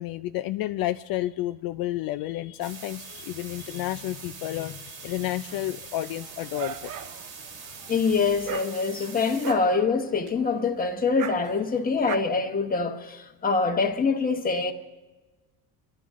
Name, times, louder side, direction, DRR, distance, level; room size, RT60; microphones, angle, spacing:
voice 1, 0.0-6.9, left 14 dB, 65° left, 0.6 m, -31 dB
sound 1, 2.6-9.5, right 5 dB, 75° right, 2.6 m, -43 dB
Dog, 6.1-12.2, right 9 dB, 55° right, 0.9 m, -39 dB
voice 2, 7.9-14.7, left 4 dB, 20° left, 1.4 m, -25 dB
29.0 x 12.0 x 3.7 m
cardioid pair, 130°, 38 cm